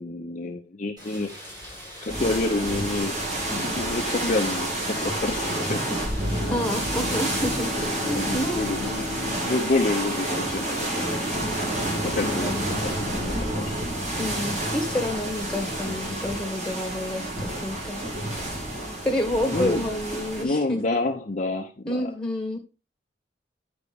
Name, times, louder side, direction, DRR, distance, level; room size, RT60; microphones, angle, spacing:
voice 1, 0.0-1.3 2.0-3.2 3.5-6.0 6.7-6.9 8.1-11.5 12.0-13.9 19.5-19.8 20.3-22.1, left 2 dB, 45° left, 3 dB, 0.7 m, -29 dB
Rain, 1.0-7.4, equal, 25° right, 5.1 m, -42 dB
sound 1, 2.1-20.4, right 1 dB, 40° right, 2.4 m, -29 dB
Bowed string instrument, 6.0-11.4, left 2 dB, 70° right, 3.1 m, -37 dB
voice 2, 6.5-8.6 12.2-12.8 14.1-18.0 19.0-20.8 21.9-22.6, left 1 dB, 5° left, 2 dB, 1.8 m, -29 dB
9.7 x 5.2 x 3.5 m, 0.29 s
head